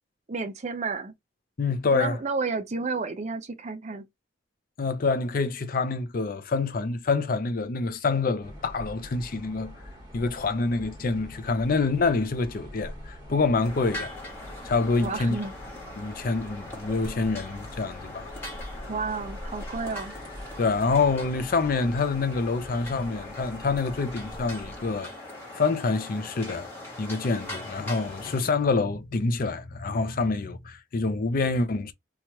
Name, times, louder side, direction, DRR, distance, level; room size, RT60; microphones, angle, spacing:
voice 1, 0.3-1.1 1.9-4.1 15.0-15.5 18.9-20.1, right 4 dB, 40° right, 0.5 m, -31 dB
voice 2, 1.6-2.2 4.8-9.7 10.1-14.1 14.6-15.4 16.0-18.3 20.6-25.1 25.5-26.7 27.0-31.9, left 4 dB, 50° left, 0.5 m, -26 dB
sound 1, 8.4-25.0, equal, 20° right, 1.1 m, -44 dB
sound 2, 13.6-28.4, left 1 dB, 10° left, 1.2 m, -41 dB
2.9 x 2.3 x 2.9 m
head